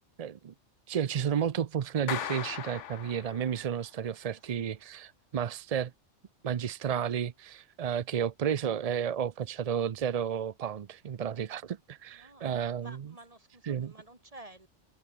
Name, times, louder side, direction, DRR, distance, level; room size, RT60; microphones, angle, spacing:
voice 1, 0.2-0.5 0.9-5.9 6.4-12.9 13.6-13.9, right 8 dB, 50° right, 0.4 m, -32 dB
Clapping, 2.1-3.8, left 10 dB, 85° left, 1.1 m, -38 dB
voice 2, 12.1-14.7, right 2 dB, 30° right, 3.4 m, -52 dB
omnidirectional pair, 1.2 m